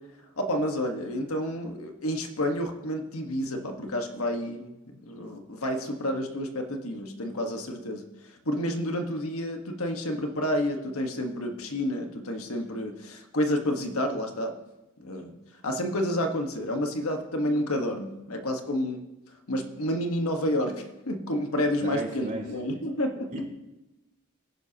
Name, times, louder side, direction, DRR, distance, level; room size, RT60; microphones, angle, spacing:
voice 1, 0.4-8.1 8.4-14.5 15.0-15.3 15.6-19.0 19.5-23.4, equal, 80° left, 4 dB, 1.5 m, -30 dB
voice 2, 21.8-22.4 23.3-23.4, right 1 dB, 40° right, -2 dB, 3.8 m, -34 dB
19.5 x 11.0 x 2.9 m, 0.99 s
head